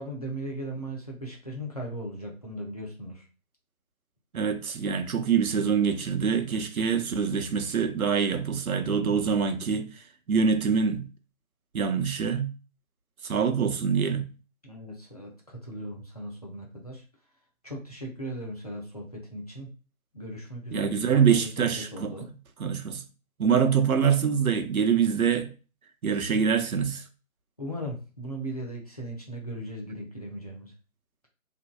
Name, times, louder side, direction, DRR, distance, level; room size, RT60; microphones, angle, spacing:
voice 1, 0.0-3.2 14.6-17.0 17.6-19.7 20.1-22.3 27.6-30.7, right 1 dB, 30° left, 0.4 m, -38 dB
voice 2, 4.3-9.9 10.3-11.0 11.7-12.5 13.2-14.2 20.7-22.1 22.6-23.0 23.4-25.5 26.0-27.0, right 6 dB, 80° right, 0.6 m, -25 dB
2.6 x 2.1 x 2.2 m
figure-of-eight pair, 150°, 42 cm